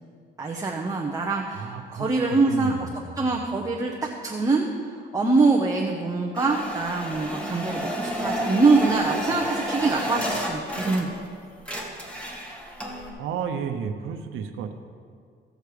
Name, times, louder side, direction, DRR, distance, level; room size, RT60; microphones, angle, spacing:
voice 1, 0.4-2.9 3.2-3.9 4.2-11.1, right 3 dB, 15° right, -1 dB, 1.0 m, -24 dB
voice 2, 1.5-3.4 13.2-14.7, right 7 dB, 85° right, 4 dB, 0.8 m, -32 dB
sound 1, 6.4-11.3 11.6-13.1, equal, 5° left, 1.9 m, -31 dB
16.5 x 6.6 x 5.0 m, 2.1 s
cardioid pair, 90°, 20 cm